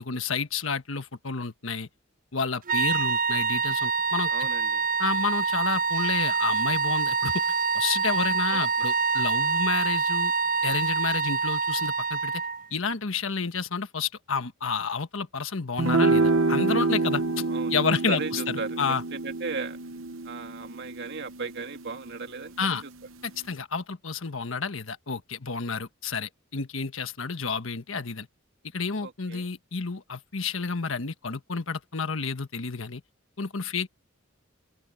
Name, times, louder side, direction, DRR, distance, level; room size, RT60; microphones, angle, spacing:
voice 1, 0.0-1.9 2.3-4.5 5.0-7.4 7.7-10.3 10.6-12.4 12.7-17.4 17.7-19.0 22.6-22.8 23.2-28.3 28.7-33.0 33.4-33.9, left 5 dB, 75° left, 1.4 m, -30 dB
sound 1, 2.7-12.7, right 5 dB, 40° right, 0.6 m, -26 dB
voice 2, 4.3-4.8 8.5-8.6 17.5-17.8 18.1-19.8 20.2-22.5 29.0-29.5, right 4 dB, 60° right, 2.3 m, -36 dB
sound 2, 15.8-22.3, right 3 dB, 75° right, 0.9 m, -27 dB
open air
head